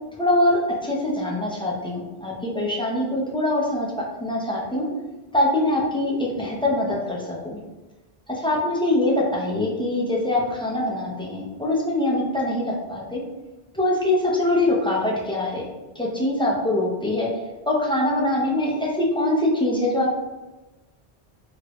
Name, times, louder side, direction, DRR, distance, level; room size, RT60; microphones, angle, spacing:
voice 1, 0.2-3.9 4.2-4.9 5.3-7.6 8.3-13.2 13.7-15.7 15.9-17.3 17.7-20.2, left 1 dB, 10° left, -4 dB, 0.4 m, -23 dB
3.1 x 2.4 x 3.0 m, 1.1 s
omnidirectional pair, 1.1 m